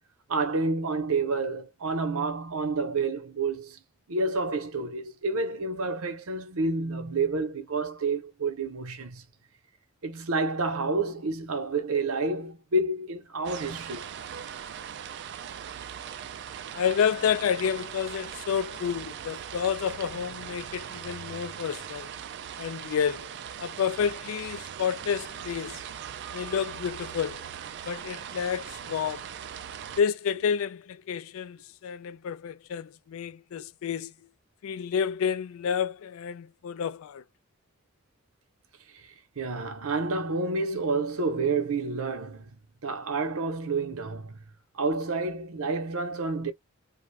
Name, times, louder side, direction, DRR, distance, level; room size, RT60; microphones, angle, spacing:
voice 1, 0.3-3.8 4.1-9.2 10.0-14.1 33.6-33.7 38.9-39.0 39.4-44.4 44.7-46.5, right 3 dB, 80° right, 0.8 m, -29 dB
sound 1, 13.4-30.0, right 8 dB, 55° right, 0.3 m, -40 dB
voice 2, 16.7-22.1 22.6-25.8 26.3-27.5 27.8-29.3 30.0-34.1 34.6-37.2, left 7 dB, 70° left, 0.3 m, -30 dB
2.4 x 2.3 x 3.2 m
head